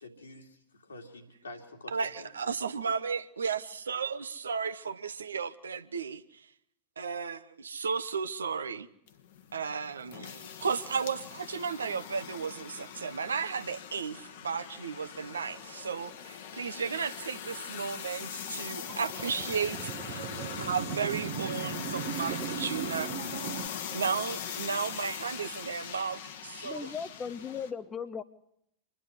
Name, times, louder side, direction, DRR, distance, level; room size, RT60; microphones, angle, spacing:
voice 1, 0.0-2.3, left 2 dB, 75° left, 3 dB, 2.8 m, -48 dB
voice 2, 1.9-6.5 7.0-8.9 9.5-20.3 20.6-23.1 23.4-23.6 23.9-26.9, right 6 dB, 70° right, 13 dB, 0.9 m, -34 dB
sound 1, 9.1-27.7, left 8 dB, 55° left, 1.4 m, -41 dB
sound 2, 18.9-23.7, right 10 dB, 50° right, 1.1 m, -38 dB
voice 3, 26.6-28.2, left 6 dB, 20° left, 13 dB, 0.7 m, -37 dB
26.0 x 11.5 x 9.6 m, 0.74 s
figure-of-eight pair, 90°, 0 cm